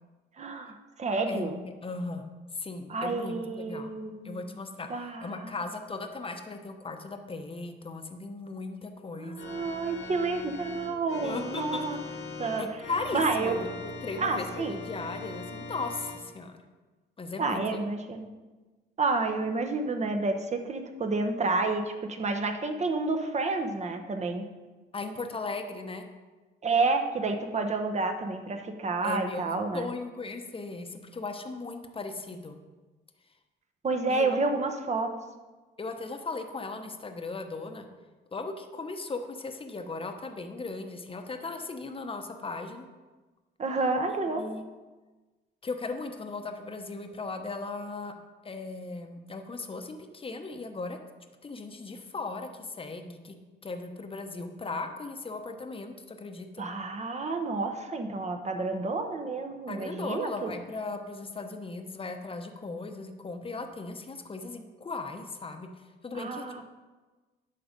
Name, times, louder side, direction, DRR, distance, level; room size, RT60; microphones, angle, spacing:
voice 1, 0.4-1.6 2.9-4.4 4.9-5.5 9.1-12.0 12.4-12.7 13.1-13.6 14.2-14.8 17.4-18.3 19.0-24.4 26.6-29.9 33.8-35.1 43.6-44.4 56.6-60.6 66.1-66.6, right 3 dB, 35° right, 5 dB, 1.0 m, -30 dB
voice 2, 1.8-2.2 2.5-3.9 4.2-4.9 5.2-9.4 11.2-11.9 12.6-16.6 17.2-17.8 24.9-26.1 29.0-29.4 29.7-32.6 34.1-34.4 35.8-37.9 38.3-42.8 44.1-44.6 45.6-48.1 48.4-51.0 51.4-53.4 53.6-56.7 59.7-65.7 66.0-66.4, left 3 dB, 25° left, 6 dB, 0.9 m, -37 dB
Organ, 9.4-16.2, left 3 dB, 70° left, 1.5 m, -41 dB
11.0 x 3.9 x 5.2 m, 1.3 s
cardioid pair, 90°, 20 cm